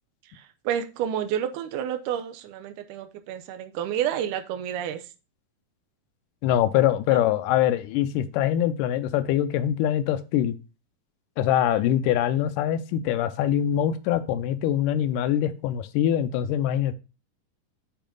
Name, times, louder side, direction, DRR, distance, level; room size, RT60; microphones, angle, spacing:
voice 1, 0.3-5.0 7.1-7.2, right 9 dB, 80° right, 7 dB, 2.1 m, -30 dB
voice 2, 6.4-10.6 11.4-16.9, left 11 dB, 90° left, 11 dB, 2.2 m, -23 dB
7.1 x 4.6 x 3.7 m, 0.31 s
omnidirectional pair, 3.7 m